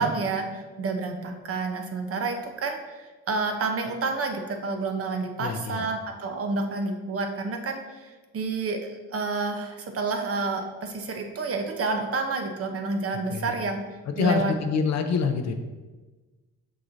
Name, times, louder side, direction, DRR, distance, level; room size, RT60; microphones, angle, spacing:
voice 1, 0.0-13.8 14.2-14.5, right 3 dB, 50° right, 4 dB, 0.9 m, -29 dB
voice 2, 5.4-5.9 13.3-13.5 14.1-15.5, left 5 dB, 60° left, 7 dB, 0.7 m, -26 dB
6.3 x 5.9 x 2.7 m, 1.2 s
cardioid pair, 90°, 30 cm